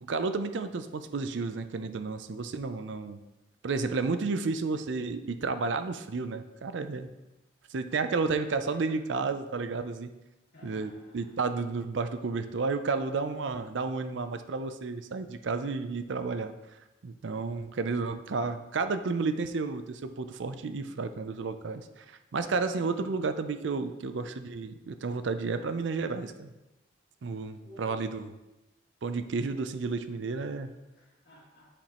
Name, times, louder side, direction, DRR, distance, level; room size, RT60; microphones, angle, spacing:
voice 1, 0.0-3.2 3.6-7.1 7.7-10.1 10.6-16.5 17.0-26.5 27.2-28.3 29.0-30.7, right 4 dB, 75° right, 10 dB, 0.5 m, -32 dB
voice 2, 8.3-9.0 10.5-11.3 22.7-23.2 27.6-28.2 30.6-31.7, left 1 dB, 55° left, -6 dB, 2.4 m, -54 dB
8.5 x 5.1 x 3.0 m, 1.0 s
head